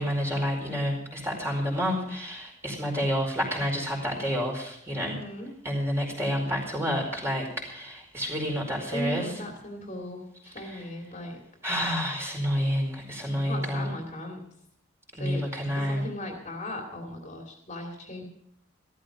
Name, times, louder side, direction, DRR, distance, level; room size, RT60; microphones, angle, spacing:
voice 1, 0.0-5.2 5.6-9.3 10.6-10.8 11.6-13.9 15.1-16.0, equal, 15° right, 0 dB, 4.7 m, -29 dB
voice 2, 5.0-5.5 8.9-11.4 13.4-14.4 15.2-15.5 15.8-18.3, left 1 dB, 35° left, 2 dB, 2.7 m, -37 dB
15.0 x 14.0 x 5.1 m, 0.70 s
head